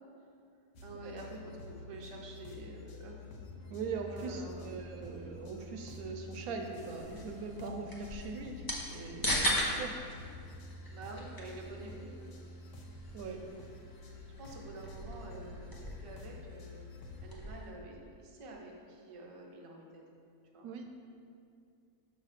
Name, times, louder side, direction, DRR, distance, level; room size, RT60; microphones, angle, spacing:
sound 1, 0.8-17.3, left 2 dB, 75° left, 1.2 m, -49 dB
voice 1, 0.8-3.2 4.1-4.7 10.9-12.1 14.4-16.8 17.2-20.0 20.5-20.7, right 2 dB, 45° right, -1 dB, 0.4 m, -48 dB
voice 2, 3.7-8.6 8.9-10.0 13.1-13.4 20.6-20.9, right 4 dB, 70° right, 3 dB, 1.0 m, -41 dB
sound 2, 7.0-17.7, equal, 25° left, 0.5 m, -39 dB
6.2 x 3.2 x 5.7 m, 2.4 s
omnidirectional pair, 1.7 m